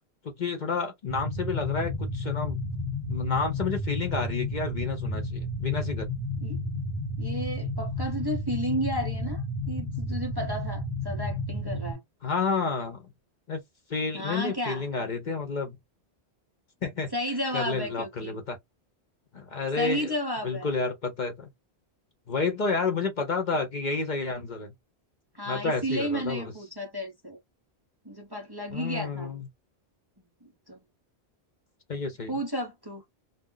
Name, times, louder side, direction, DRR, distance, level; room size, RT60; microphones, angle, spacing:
voice 1, 0.2-2.6 3.1-6.1 12.2-13.1 13.5-13.6 13.9-15.8 16.8-17.1 17.5-18.6 19.3-20.1 20.4-21.5 22.3-24.7 25.5-26.5 28.7-29.5 31.9-32.4, left 4 dB, 50° left, 0.8 m, -30 dB
sound 1, 1.1-11.9, left 1 dB, 20° left, 0.9 m, -32 dB
voice 2, 7.2-12.0 14.1-14.8 17.1-18.4 19.8-20.7 25.3-27.4 28.0-29.3 30.4-30.8 32.3-33.0, equal, 25° right, 0.6 m, -33 dB
2.4 x 2.1 x 3.7 m
omnidirectional pair, 1.1 m